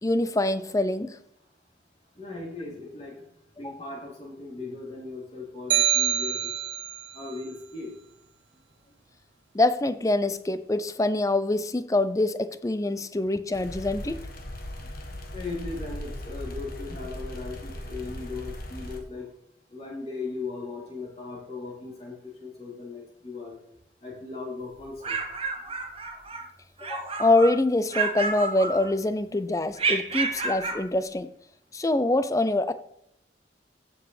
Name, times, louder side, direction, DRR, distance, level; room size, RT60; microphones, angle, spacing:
voice 1, 0.0-1.2 3.6-3.8 9.5-14.3 26.8-31.3 31.7-32.7, left 2 dB, 20° left, 13 dB, 0.5 m, -25 dB
voice 2, 2.2-3.1 3.6-6.4 7.1-7.9 15.3-19.3 19.7-23.6 24.0-25.2, left 3 dB, 35° left, -4 dB, 3.8 m, -38 dB
sound 1, 5.7-7.1, right 11 dB, 85° right, 0.6 m, -25 dB
sound 2, 13.5-19.0, left 1 dB, 55° left, 1.5 m, -38 dB
sound 3, 24.8-26.5 26.8-27.6 27.9-29.2 29.8-30.9, right 4 dB, 30° right, 1.2 m, -30 dB
14.5 x 6.9 x 3.3 m, 0.74 s
head